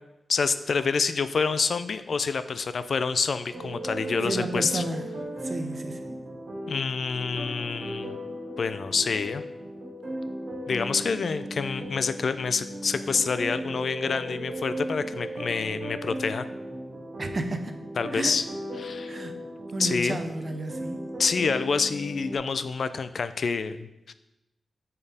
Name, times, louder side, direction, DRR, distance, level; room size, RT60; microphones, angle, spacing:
voice 1, 0.3-4.8 6.7-8.1 8.6-9.4 10.7-16.5 18.0-18.4 18.8-19.2 19.8-20.2 21.2-24.1, left 5 dB, 60° left, 12 dB, 0.3 m, -27 dB
sound 1, 3.5-22.4, equal, 60° right, 1.6 m, -36 dB
voice 2, 4.2-5.0 5.4-6.2 17.2-17.7 18.1-18.3 19.1-19.4 19.7-21.0, right 2 dB, 35° right, 7 dB, 0.6 m, -32 dB
8.4 x 4.5 x 3.4 m, 0.93 s
wide cardioid pair, 170°, 0 cm